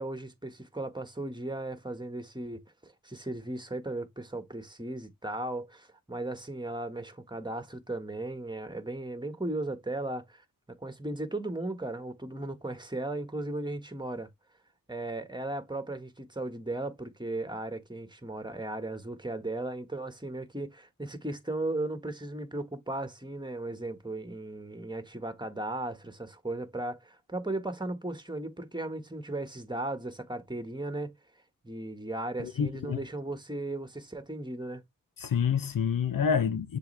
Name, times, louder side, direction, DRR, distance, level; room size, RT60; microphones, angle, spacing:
voice 1, 0.0-14.3 14.9-31.1 31.6-34.8, right 2 dB, 10° right, 1.6 m, -36 dB
voice 2, 32.4-33.0 35.2-36.8, left 7 dB, 70° left, 0.8 m, -28 dB
6.9 x 4.1 x 3.4 m
cardioid pair, 60°, 35 cm